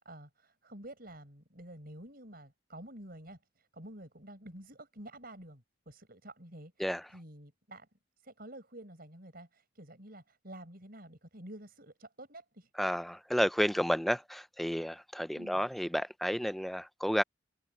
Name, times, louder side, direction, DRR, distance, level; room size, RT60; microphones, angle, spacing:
voice 1, 0.0-7.9 8.2-12.7 15.3-15.6, right 1 dB, 50° right, 6.8 m, -50 dB
voice 2, 12.8-17.2, equal, ahead, 0.4 m, -31 dB
head